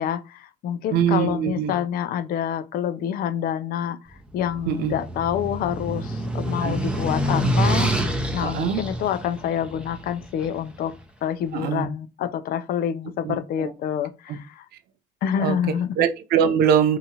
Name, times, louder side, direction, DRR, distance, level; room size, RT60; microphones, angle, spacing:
voice 1, 0.0-4.0 4.3-10.9 11.2-14.7 15.2-16.0, left 9 dB, 60° left, 0.4 m, -27 dB
voice 2, 0.9-1.7 4.7-4.9 6.6-6.8 8.4-8.8 11.5-11.9 13.2-13.7 14.3-14.4 15.4-17.0, right 8 dB, 70° right, 0.4 m, -23 dB
sound 1, 4.3-10.6, right 1 dB, 5° right, 0.5 m, -26 dB
2.8 x 2.3 x 2.8 m
cardioid pair, 110°, 17 cm